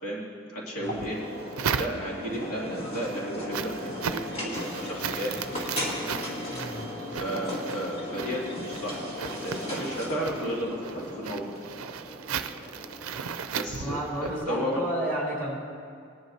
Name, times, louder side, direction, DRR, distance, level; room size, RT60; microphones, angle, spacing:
voice 1, 0.0-1.2 1.7-5.4 7.1-11.5 13.5-14.8, equal, 85° left, -4 dB, 2.4 m, -33 dB
sound 1, 0.8-13.5, left 1 dB, 30° left, 2.2 m, -36 dB
sound 2, 0.9-2.4 2.9-14.4, right 7 dB, 70° right, 0.4 m, -36 dB
voice 2, 6.5-6.8 13.7-15.6, right 1 dB, 10° left, -6 dB, 3.2 m, -31 dB
20.0 x 10.5 x 2.8 m, 2.4 s
head